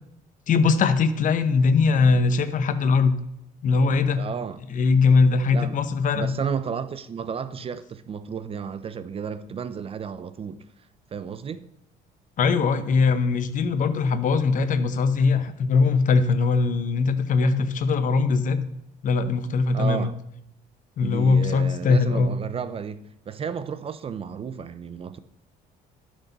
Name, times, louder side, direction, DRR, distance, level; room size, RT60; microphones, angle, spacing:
voice 1, 0.5-3.1 3.6-4.3 4.7-6.3 12.4-18.6 19.0-20.1 21.0-22.4, left 4 dB, 50° left, 0.8 m, -21 dB
voice 2, 4.2-4.6 5.5-5.8 6.1-10.6 11.1-11.7 19.7-20.2 21.0-25.2, right 7 dB, 35° right, 0.5 m, -32 dB
11.5 x 6.1 x 4.0 m
cardioid pair, 110°, 17 cm